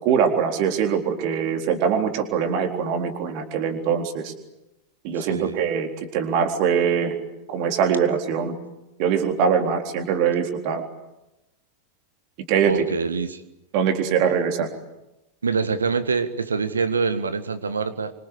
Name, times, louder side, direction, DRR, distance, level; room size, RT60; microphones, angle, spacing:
voice 1, 0.0-4.3 5.0-5.9 6.1-7.2 7.5-8.5 9.0-10.8 12.5-12.7 13.7-14.7, right 7 dB, 45° right, 4 dB, 3.8 m, -22 dB
voice 2, 5.2-5.7 12.6-13.4 15.4-18.1, right 5 dB, 75° right, 12 dB, 1.8 m, -25 dB
27.5 x 25.0 x 8.4 m, 0.96 s
figure-of-eight pair, 90°, 0 cm